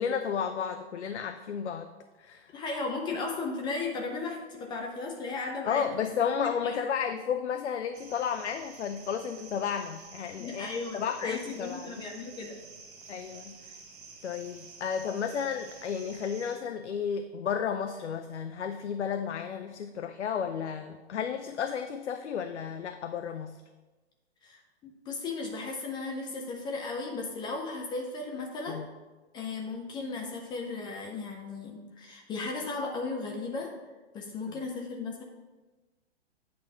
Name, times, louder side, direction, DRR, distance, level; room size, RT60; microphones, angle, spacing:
voice 1, 0.0-1.9 2.2-2.5 5.7-10.7 10.9-12.1 13.1-13.8 14.2-23.6 28.7-28.9 34.5-34.6, left 7 dB, 85° left, 8 dB, 0.5 m, -33 dB
voice 2, 2.5-6.1 6.6-6.9 10.4-12.6 24.4-28.9 29.3-33.7 34.1-35.2, left 3 dB, 15° left, 1 dB, 0.5 m, -36 dB
sound 1, 7.9-16.6, right 4 dB, 35° right, 1.2 m, -50 dB
8.4 x 3.1 x 5.5 m, 1.2 s
hypercardioid pair, 120°, 33 cm